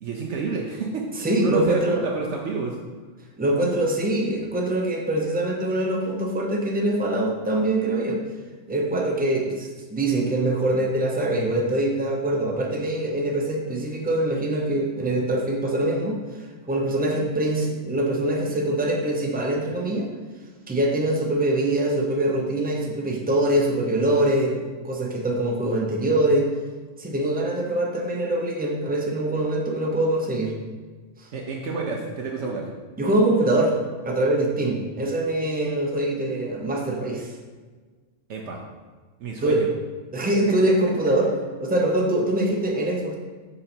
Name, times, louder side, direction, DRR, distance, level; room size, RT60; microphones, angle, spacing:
voice 1, 0.0-2.8 31.3-32.7 38.3-38.6 39.2-39.7, right 4 dB, 65° right, -1 dB, 0.9 m, -29 dB
voice 2, 1.2-2.0 3.4-8.2 8.7-20.1 20.7-26.5 27.0-30.5 31.2-31.3 33.0-33.8 34.0-37.3 39.4-39.6 40.1-41.3 41.6-43.1, right 1 dB, 10° right, 0 dB, 0.5 m, -23 dB
5.6 x 3.9 x 4.3 m, 1.4 s
omnidirectional pair, 1.3 m